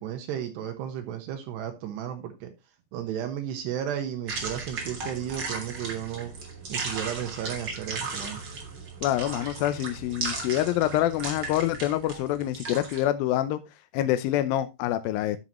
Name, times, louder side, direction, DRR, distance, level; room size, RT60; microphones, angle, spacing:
voice 1, 0.0-2.5 2.9-6.3 6.7-8.4, right 10 dB, 80° right, 3.3 m, -33 dB
sound 1, 4.3-13.0, right 4 dB, 40° right, 1.9 m, -36 dB
voice 2, 9.0-13.6 13.9-15.4, left 13 dB, 80° left, 2.1 m, -26 dB
12.5 x 6.5 x 3.0 m
omnidirectional pair, 5.0 m